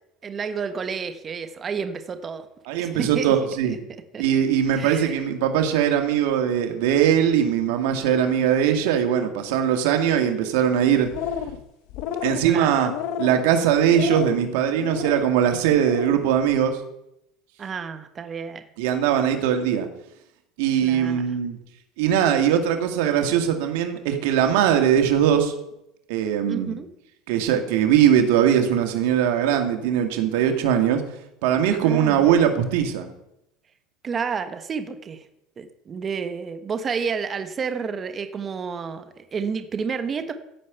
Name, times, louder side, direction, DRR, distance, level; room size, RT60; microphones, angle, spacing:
voice 1, 0.2-2.5 2.8-3.3 3.6-3.8 4.1-4.2 4.7-5.2 12.4-12.9 17.6-18.6 20.8-21.3 26.5-26.9 31.8-32.3 34.0-35.2 35.6-40.3, right 6 dB, 30° right, 9 dB, 1.3 m, -30 dB
voice 2, 2.7-3.8 4.2-11.1 12.2-12.9 13.2-16.8 18.8-19.9 20.6-21.6 22.0-25.5 26.1-26.8 27.3-31.0 31.4-33.1, right 9 dB, 80° right, 5 dB, 2.0 m, -20 dB
sound 1, 10.9-11.6 11.9-12.5 12.8-13.4 13.9-14.4 14.8-15.2 15.7-16.1, left 9 dB, 70° left, 1.2 m, -31 dB
15.5 x 5.2 x 8.2 m, 0.82 s
supercardioid pair, 115°, 0 cm